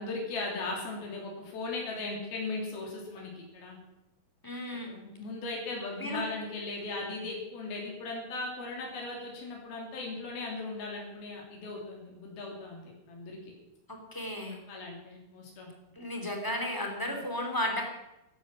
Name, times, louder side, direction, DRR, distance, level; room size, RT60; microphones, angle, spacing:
voice 1, 0.0-3.8 4.7-13.5 14.5-15.7 17.0-17.2, left 3 dB, 90° left, -1 dB, 5.1 m, -38 dB
voice 2, 4.4-4.9 6.0-6.2 13.9-14.6 16.0-17.8, left 1 dB, 5° left, 2 dB, 2.7 m, -34 dB
14.0 x 11.5 x 7.7 m, 0.93 s
omnidirectional pair, 4.2 m